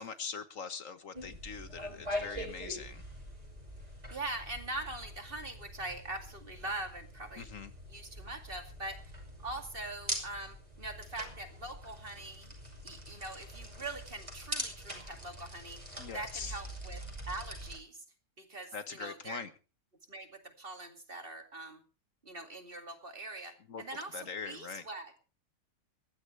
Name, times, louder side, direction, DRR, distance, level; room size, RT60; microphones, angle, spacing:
voice 1, 0.0-3.0 7.4-7.7 16.0-16.6 18.7-19.5 23.7-23.8 24.1-24.9, left 5 dB, 65° left, 1.6 m, -42 dB
sound 1, 1.1-17.8, equal, 20° right, 5.6 m, -43 dB
voice 2, 4.1-7.5 7.9-9.0 9.4-12.5 12.8-15.8 16.1-18.0 18.4-19.4 20.1-21.8 22.2-25.1, right 2 dB, 40° right, 2.7 m, -42 dB
21.0 x 15.0 x 3.3 m
omnidirectional pair, 1.5 m